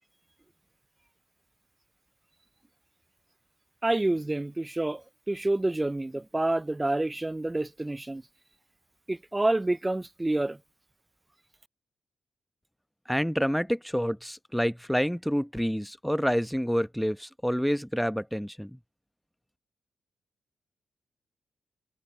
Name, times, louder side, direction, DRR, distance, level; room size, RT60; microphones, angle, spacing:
voice 1, 3.8-8.2 9.1-10.6, right 2 dB, 20° right, 0.4 m, -28 dB
voice 2, 13.1-18.8, equal, ahead, 0.9 m, -28 dB
supercardioid pair, 60°, 0 cm